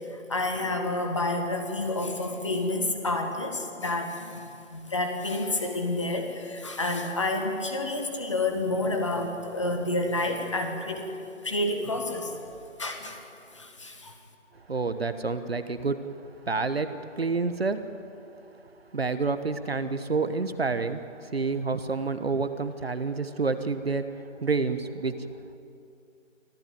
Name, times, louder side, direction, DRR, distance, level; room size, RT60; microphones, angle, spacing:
voice 1, 0.1-11.1 11.4-12.4 12.8-13.2 13.5-14.1, left 2 dB, 25° left, 4 dB, 1.6 m, -29 dB
voice 2, 14.7-16.0 16.4-17.8 18.9-25.2, right 4 dB, 50° right, 10 dB, 1.2 m, -28 dB
25.0 x 15.0 x 9.2 m, 2.6 s
figure-of-eight pair, 170°, 38 cm